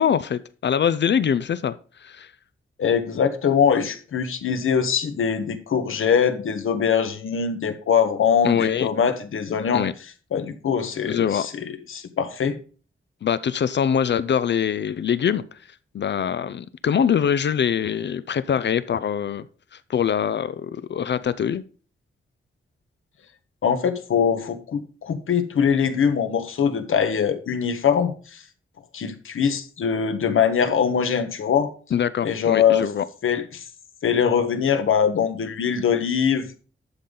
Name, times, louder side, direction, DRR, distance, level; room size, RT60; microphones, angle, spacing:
voice 1, 0.0-1.7 2.0-2.3 8.4-8.9 9.7-9.9 11.1-11.5 13.2-15.4 15.9-19.5 19.9-21.6 31.9-33.0, left 8 dB, 60° left, 0.5 m, -23 dB
voice 2, 2.8-9.8 10.3-12.6 23.6-28.4 28.9-31.7 32.2-32.9 33.2-33.6 34.0-36.6, left 7 dB, 80° left, 1.3 m, -22 dB
11.5 x 7.2 x 3.8 m
wide cardioid pair, 155°, 21 cm